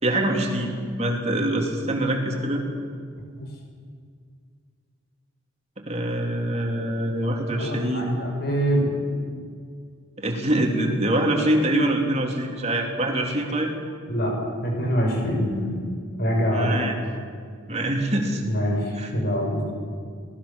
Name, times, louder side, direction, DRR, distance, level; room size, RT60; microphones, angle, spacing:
voice 1, 0.0-0.7 1.0-2.7 5.8-8.1 10.2-13.7 16.5-16.9 17.7-18.4 19.0-19.1, right 1 dB, 30° right, 1 dB, 3.4 m, -24 dB
voice 2, 7.6-9.0 14.1-14.3 14.6-15.9 16.2-16.9 18.4-19.6, equal, 50° left, 1 dB, 5.9 m, -25 dB
25.0 x 19.5 x 7.1 m, 2.1 s
head